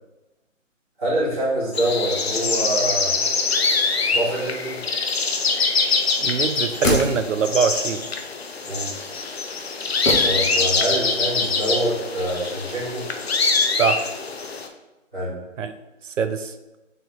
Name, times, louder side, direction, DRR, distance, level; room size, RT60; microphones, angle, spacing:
voice 1, 1.0-3.1 4.1-4.8 8.6-8.9 10.2-13.0 15.1-15.3, right 1 dB, 5° left, -24 dB, 0.6 m, -25 dB
sound 1, 1.7-14.7, left 4 dB, 55° left, 0.5 m, -24 dB
voice 2, 6.2-8.0 13.8-14.1 15.6-15.7 16.2-16.5, right 6 dB, 70° right, 9 dB, 0.6 m, -23 dB
sound 2, 6.5-7.7 10.1-11.0 11.2-11.3, left 2 dB, 75° left, 1.4 m, -26 dB
4.3 x 3.1 x 3.8 m, 1.0 s
figure-of-eight pair, 160°, 39 cm